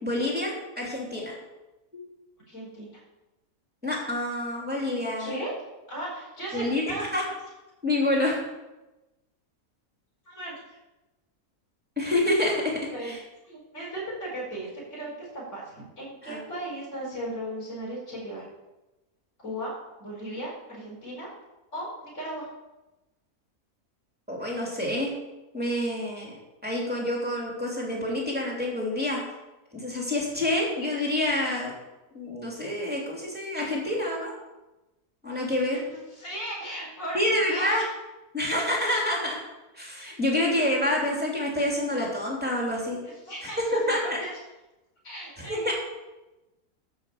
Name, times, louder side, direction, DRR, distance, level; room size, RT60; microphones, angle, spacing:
voice 1, 0.0-1.3 1.9-2.0 3.8-5.3 6.5-7.2 7.8-8.4 12.0-12.6 13.0-13.2 16.2-16.4 24.3-25.1 25.5-26.3 26.6-29.2 29.7-31.7 32.1-34.3 35.2-35.8 37.1-37.8 38.3-39.4 39.7-43.0 43.6-44.2 45.5-45.7, left 1 dB, 5° right, -3 dB, 2.8 m, -27 dB
voice 2, 2.5-3.0 5.2-5.5 5.9-7.3 10.3-10.6 12.9-13.1 13.4-18.4 19.4-21.3 21.7-22.5 35.7-37.8 43.0-44.0 44.2-44.3 45.0-45.7, right 1 dB, 50° left, -5 dB, 5.1 m, -37 dB
13.0 x 6.0 x 7.3 m, 1.0 s
omnidirectional pair, 1.6 m